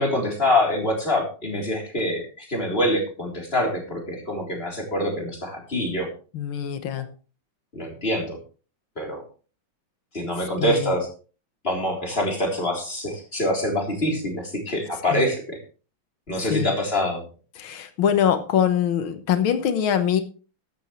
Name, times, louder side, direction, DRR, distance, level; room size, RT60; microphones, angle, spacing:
voice 1, 0.0-6.1 7.7-8.4 9.0-9.2 10.1-11.1 11.6-15.6 16.3-17.2, left 1 dB, 30° left, 0 dB, 3.9 m, -25 dB
voice 2, 6.3-7.1 10.4-10.9 15.1-15.3 16.4-16.7 17.6-20.2, left 9 dB, 85° left, 9 dB, 2.0 m, -23 dB
14.0 x 11.5 x 3.2 m, 0.37 s
omnidirectional pair, 2.2 m